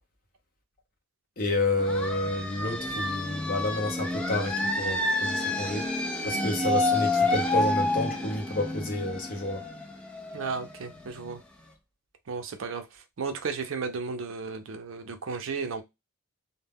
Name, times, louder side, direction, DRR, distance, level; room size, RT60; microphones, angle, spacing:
voice 1, 1.4-5.9 6.2-9.7, left 2 dB, 40° left, 0.7 m, -30 dB
sound 1, 1.8-11.3, left 2 dB, 5° left, 0.3 m, -29 dB
voice 2, 10.3-11.4 12.3-15.8, right 5 dB, 60° right, 0.5 m, -34 dB
2.1 x 2.1 x 3.4 m
head